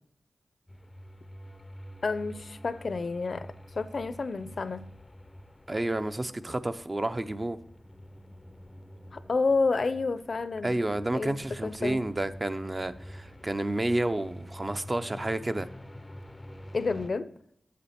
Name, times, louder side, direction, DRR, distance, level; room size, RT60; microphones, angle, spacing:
sound 1, 0.7-17.1, equal, 25° left, 0.5 m, -47 dB
voice 1, 2.0-3.5 3.7-4.9 9.1-10.8 11.1-12.0 16.7-17.3, left 4 dB, 70° left, 0.6 m, -30 dB
voice 2, 5.7-7.6 10.6-15.7, right 1 dB, 30° right, 0.6 m, -30 dB
8.5 x 7.6 x 4.3 m
wide cardioid pair, 60°, 0 cm